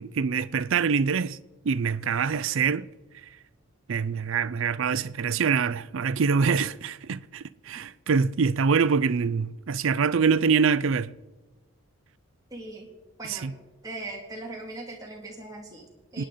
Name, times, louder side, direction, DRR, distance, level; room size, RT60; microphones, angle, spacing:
voice 1, 0.0-1.4 1.6-2.9 3.2-3.3 3.9-11.1 13.2-13.5 16.2-16.3, right 5 dB, 60° right, 0.4 m, -25 dB
voice 2, 12.5-12.9 13.2-13.5 13.8-16.3, right 2 dB, 15° right, 2.1 m, -39 dB
27.5 x 9.9 x 3.9 m
head